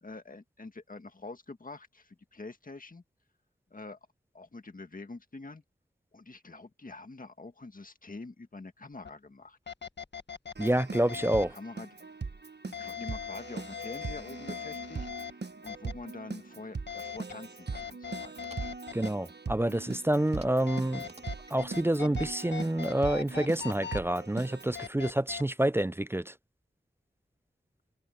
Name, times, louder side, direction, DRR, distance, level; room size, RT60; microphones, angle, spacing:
voice 1, 0.0-3.0 3.7-4.0 4.3-5.6 6.1-9.6 11.5-11.9 12.8-15.4 15.6-18.5, left 3 dB, 45° left, 1.8 m, -46 dB
sound 1, 9.0-9.1 9.7-11.5 12.7-15.3 15.7-15.9 16.9-17.3 17.7-19.1 20.7-22.3 22.5-24.0 24.7-25.4, left 7 dB, 70° left, 1.5 m, -40 dB
voice 2, 10.6-11.6 18.9-21.0 21.5-26.3, right 1 dB, 10° right, 0.3 m, -28 dB
Keyboard (musical), 10.6-24.9, right 4 dB, 65° right, 1.3 m, -41 dB
sound 2, 18.3-18.9 20.3-20.7 21.0-21.6 23.4-24.1, right 2 dB, 35° right, 2.5 m, -55 dB
wide cardioid pair, 80°, 19 cm